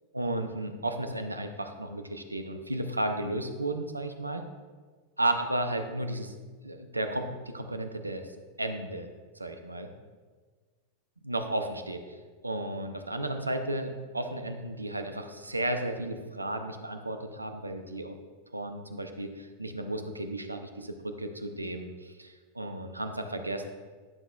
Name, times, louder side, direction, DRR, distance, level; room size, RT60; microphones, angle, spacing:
voice 1, 0.1-4.4 5.2-6.3 6.6-8.3 8.6-9.1 9.4-9.9 11.2-12.0 12.4-18.2 18.5-23.6, right 1 dB, 85° right, 7 dB, 0.6 m, -33 dB
11.0 x 5.9 x 2.4 m, 1.4 s
figure-of-eight pair, 90°, 0 cm